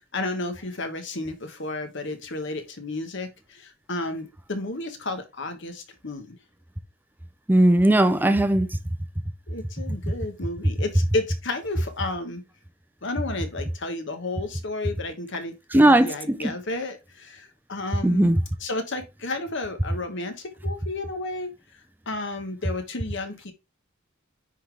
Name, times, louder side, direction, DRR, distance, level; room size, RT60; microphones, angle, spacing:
voice 1, 0.1-6.4 9.5-12.4 13.0-21.5 22.1-23.5, left 2 dB, 55° left, 1.3 m, -32 dB
voice 2, 7.5-8.7 15.7-16.5 18.0-18.4, right 1 dB, 10° right, 0.5 m, -18 dB
9.8 x 3.8 x 3.4 m
head